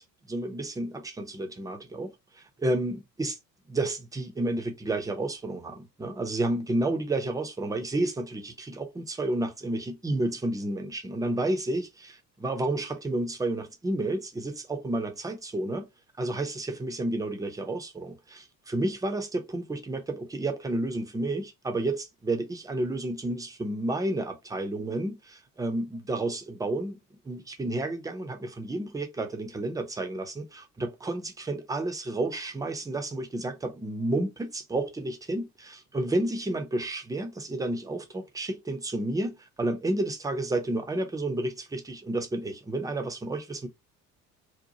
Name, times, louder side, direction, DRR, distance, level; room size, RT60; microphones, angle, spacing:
voice 1, 0.0-3.4 3.7-15.9 16.2-27.0 27.3-43.7, right 2 dB, 10° right, 0.5 m, -31 dB
2.7 x 2.2 x 2.7 m
figure-of-eight pair, 55°, 48 cm